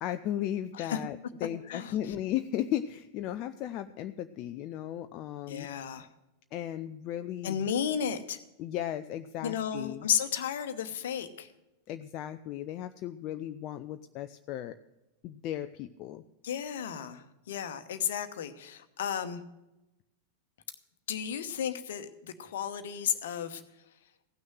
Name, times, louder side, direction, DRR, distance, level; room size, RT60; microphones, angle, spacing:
voice 1, 0.0-5.7 6.5-7.6 8.6-10.0 11.9-14.8 15.2-16.2, left 12 dB, 40° left, 9 dB, 0.4 m, -36 dB
voice 2, 1.7-2.1 5.5-6.1 7.4-8.4 9.4-11.5 16.4-19.4 21.1-24.0, left 8 dB, 60° left, 11 dB, 1.0 m, -33 dB
16.0 x 6.3 x 7.7 m, 0.97 s
figure-of-eight pair, 90°, 0 cm